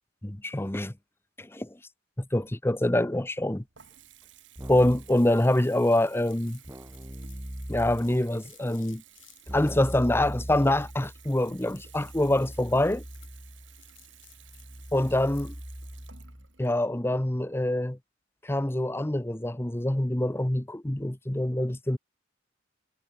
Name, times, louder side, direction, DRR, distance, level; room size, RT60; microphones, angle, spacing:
voice 1, 0.2-0.9 1.4-1.7 2.2-3.6 4.7-6.6 7.7-9.0 9.5-13.0 14.9-15.5 16.6-18.0 18.4-22.0, left 1 dB, 10° left, 0.8 m, -25 dB
Water tap faucet / Bathtub (filling or washing) / Trickle dribble, 3.1-18.0, right 10 dB, 70° right, 3.5 m, -55 dB
Keyboard (musical), 4.6-5.2 6.6-8.2 9.5-16.5, equal, 15° right, 2.1 m, -41 dB
sound 1, 5.9-15.7, left 15 dB, 85° left, 4.9 m, -60 dB
head